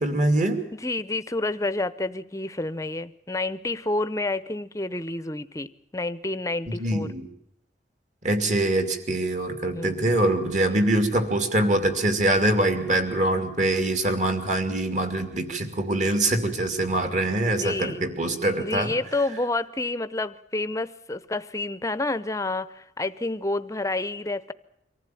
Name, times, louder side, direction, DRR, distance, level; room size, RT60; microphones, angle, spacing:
voice 1, 0.0-0.6 6.7-7.2 8.2-18.9, right 1 dB, 40° right, 8 dB, 2.7 m, -24 dB
voice 2, 0.7-7.1 9.7-10.2 10.6-10.9 17.4-18.1 18.6-24.5, left 2 dB, 15° left, 15 dB, 0.7 m, -29 dB
24.5 x 15.0 x 9.2 m, 0.81 s
head